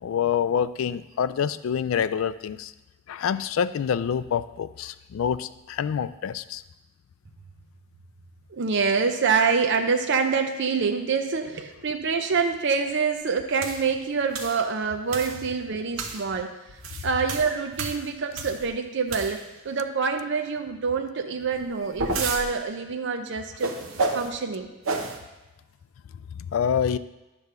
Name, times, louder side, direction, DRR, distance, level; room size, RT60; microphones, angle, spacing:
voice 1, 0.0-2.7 3.1-6.6 26.5-27.0, left 8 dB, 75° left, 15 dB, 0.3 m, -26 dB
voice 2, 8.5-16.6 17.0-23.8 24.1-24.7, right 5 dB, 60° right, 5 dB, 0.6 m, -26 dB
sound 1, 13.6-13.8 14.3-14.6 15.1-15.4 16.0-16.2 16.7-18.7 19.1-19.6 21.5-22.4 23.6-24.3 24.8-25.2, right 3 dB, 85° right, 0.9 m, -30 dB
9.8 x 3.5 x 6.6 m, 1.0 s
head